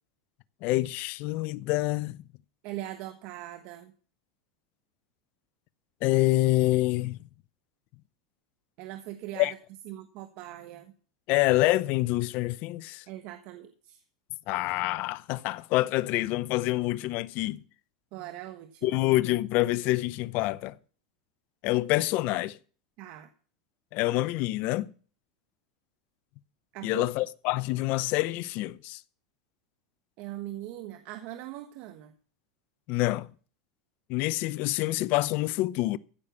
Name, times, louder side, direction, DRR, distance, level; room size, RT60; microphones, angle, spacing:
voice 1, 0.6-2.2 6.0-7.2 9.4-9.5 11.3-13.0 14.5-17.6 18.8-20.7 21.6-22.6 23.9-24.9 26.8-29.0 32.9-33.3 34.1-36.0, left 18 dB, 55° left, 0.7 m, -26 dB
voice 2, 2.6-3.9 8.8-9.5 9.9-10.9 13.1-14.0 18.1-19.0 23.0-23.3 26.7-27.1 30.2-32.1, right 14 dB, 55° right, 1.3 m, -41 dB
15.0 x 6.7 x 7.0 m
supercardioid pair, 115°, 3 cm